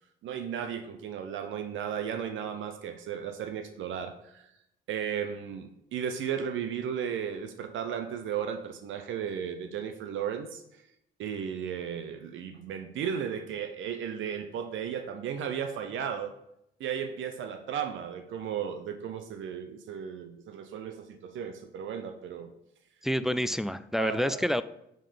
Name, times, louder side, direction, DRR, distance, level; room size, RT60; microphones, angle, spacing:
voice 1, 0.2-4.5 4.9-10.6 11.2-16.3 16.8-22.5 24.0-24.4, right 8 dB, 75° right, 7 dB, 0.7 m, -35 dB
voice 2, 23.0-24.6, equal, ahead, 13 dB, 0.3 m, -28 dB
7.4 x 3.8 x 5.0 m, 0.80 s
cardioid pair, 90°, 20 cm